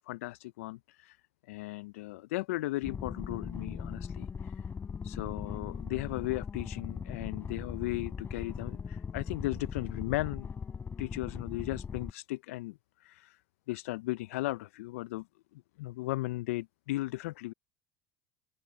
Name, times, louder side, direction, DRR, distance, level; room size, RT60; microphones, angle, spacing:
voice 1, 0.1-1.2 1.5-4.6 5.0-10.5 11.0-13.4 13.7-15.3 15.8-17.5, left 19 dB, 80° left, 0.4 m, -36 dB
sound 1, 2.8-12.1, left 6 dB, 30° left, 7.3 m, -39 dB
open air
hypercardioid pair, 80°, 7 cm